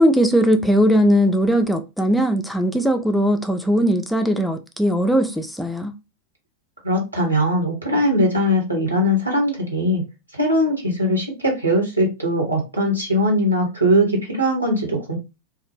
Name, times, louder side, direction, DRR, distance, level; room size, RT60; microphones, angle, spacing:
voice 1, 0.0-5.9, equal, ahead, 0.3 m, -19 dB
voice 2, 6.8-10.0 10.3-15.2, equal, 85° right, 1.1 m, -20 dB
2.3 x 2.0 x 3.0 m
figure-of-eight pair, 90°, 0 cm